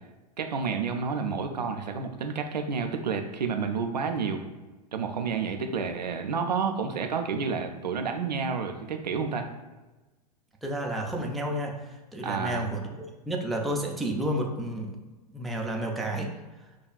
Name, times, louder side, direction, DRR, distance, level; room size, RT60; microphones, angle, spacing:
voice 1, 0.4-4.4 4.9-9.5 12.2-12.7, right 5 dB, 80° right, 5 dB, 0.5 m, -30 dB
voice 2, 10.6-12.8 13.3-14.9 15.3-16.3, right 1 dB, ahead, -1 dB, 0.4 m, -31 dB
6.0 x 2.3 x 2.3 m, 1.1 s
figure-of-eight pair, 95°, 21 cm